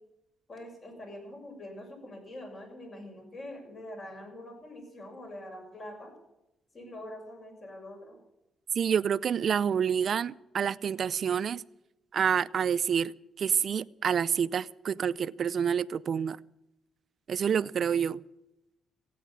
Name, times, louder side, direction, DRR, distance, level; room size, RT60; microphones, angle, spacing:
voice 1, 0.5-6.1 6.7-8.2, left 1 dB, 45° left, 6.6 m, -44 dB
voice 2, 8.7-11.6 12.1-13.1 13.4-16.4 17.3-18.2, right 7 dB, 55° right, 0.5 m, -28 dB
15.5 x 9.3 x 8.6 m
cardioid pair, 90°, 0 cm